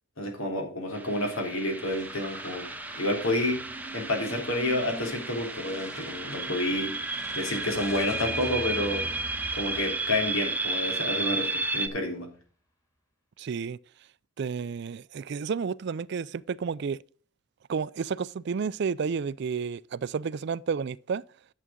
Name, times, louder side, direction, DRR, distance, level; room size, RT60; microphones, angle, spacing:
voice 1, 0.2-2.7 3.0-3.6 3.9-6.9 7.3-9.1 9.5-12.3, left 1 dB, 80° left, 3.4 m, -29 dB
sound 1, 0.9-11.9, right 3 dB, 10° right, 0.7 m, -33 dB
sound 2, 1.9-11.4, equal, 15° left, 2.6 m, -44 dB
voice 2, 13.4-13.8 14.4-17.0 17.7-21.2, right 6 dB, 55° right, 0.4 m, -31 dB
11.0 x 7.6 x 3.7 m
head